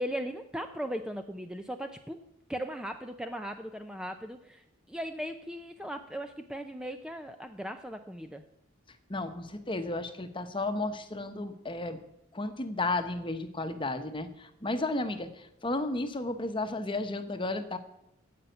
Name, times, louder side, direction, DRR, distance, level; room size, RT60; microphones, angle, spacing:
voice 1, 0.0-2.2 2.5-8.4, equal, 5° right, 6 dB, 0.5 m, -38 dB
voice 2, 9.1-12.0 12.3-17.8, left 2 dB, 25° left, 8 dB, 1.0 m, -33 dB
15.5 x 5.7 x 9.2 m, 0.82 s
head